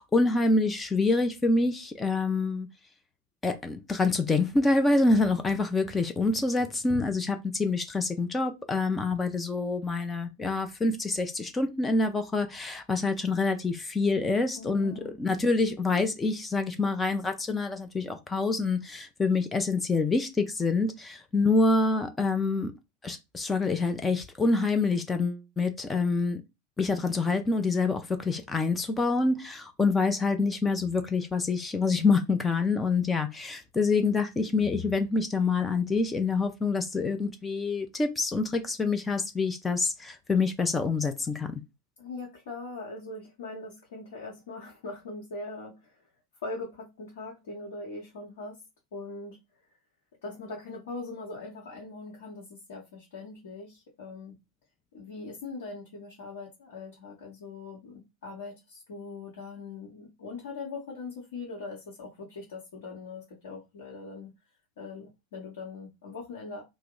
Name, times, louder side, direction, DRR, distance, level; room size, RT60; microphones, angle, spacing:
voice 1, 0.0-2.7 3.4-22.7 23.0-26.4 26.8-41.6, left 3 dB, 15° left, 0.4 m, -26 dB
voice 2, 14.5-15.2 42.0-46.0 46.4-48.6 48.9-49.4 50.2-54.4 54.9-64.3 64.8-66.6, left 3 dB, 60° left, 1.0 m, -41 dB
2.8 x 2.1 x 3.7 m
figure-of-eight pair, 90°, 0 cm